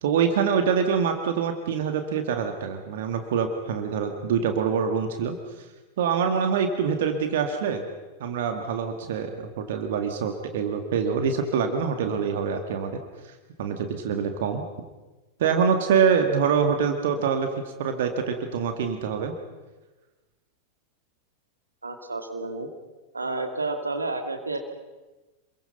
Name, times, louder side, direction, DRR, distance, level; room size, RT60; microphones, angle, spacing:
voice 1, 0.0-5.4 6.0-7.8 8.2-13.0 13.6-14.6 15.4-17.5 17.8-19.3, right 6 dB, 55° right, 6 dB, 2.0 m, -25 dB
voice 2, 21.8-22.7 23.1-24.6, right 3 dB, 80° right, 5 dB, 2.4 m, -30 dB
27.5 x 22.0 x 5.6 m, 1.2 s
figure-of-eight pair, 90°, 0 cm